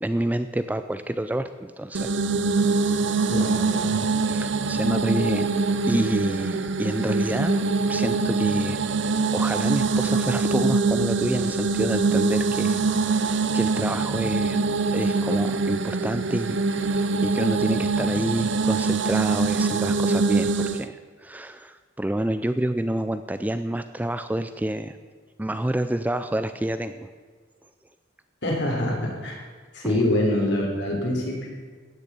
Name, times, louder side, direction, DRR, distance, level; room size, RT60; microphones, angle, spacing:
voice 1, 0.0-2.1 2.6-2.7 4.3-14.6 14.9-25.0 25.4-27.1 29.8-30.0, right 1 dB, 10° right, 10 dB, 0.4 m, -28 dB
sound 1, 1.9-20.9, right 4 dB, 60° right, 0.6 m, -24 dB
voice 2, 3.3-4.0 28.4-29.4 29.7-31.5, left 1 dB, 60° left, -1 dB, 3.6 m, -25 dB
16.5 x 6.8 x 8.3 m, 1.5 s
head